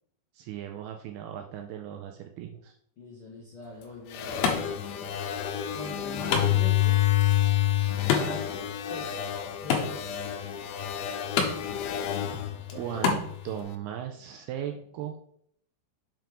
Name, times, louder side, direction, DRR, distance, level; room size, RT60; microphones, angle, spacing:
voice 1, 0.3-2.8 12.3-12.4 12.7-15.2, right 10 dB, 90° right, 4 dB, 2.3 m, -37 dB
voice 2, 3.0-4.8 5.7-7.0 8.0-8.6 8.9-9.3 9.6-10.3 12.7-13.1, left 2 dB, 50° left, -5 dB, 1.7 m, -42 dB
Wood, 3.6-13.6, left 6 dB, 70° left, 2.8 m, -33 dB
sound 1, 4.1-13.6, left 12 dB, 90° left, 3.1 m, -28 dB
7.7 x 4.5 x 5.2 m, 0.66 s
omnidirectional pair, 5.2 m